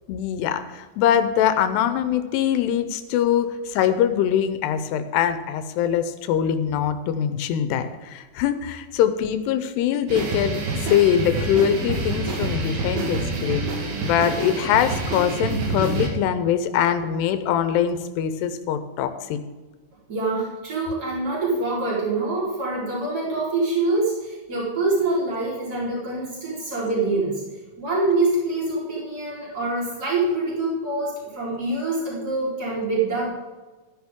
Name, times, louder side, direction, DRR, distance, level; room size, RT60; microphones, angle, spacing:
voice 1, 0.1-13.7 14.0-19.4, left 9 dB, 90° left, 10 dB, 2.8 m, -23 dB
sound 1, 10.1-16.1, right 3 dB, 70° right, 3.4 m, -27 dB
voice 2, 20.1-27.4 27.8-33.3, right 2 dB, 25° right, -6 dB, 4.3 m, -25 dB
13.5 x 10.5 x 3.7 m, 1.3 s
omnidirectional pair, 4.6 m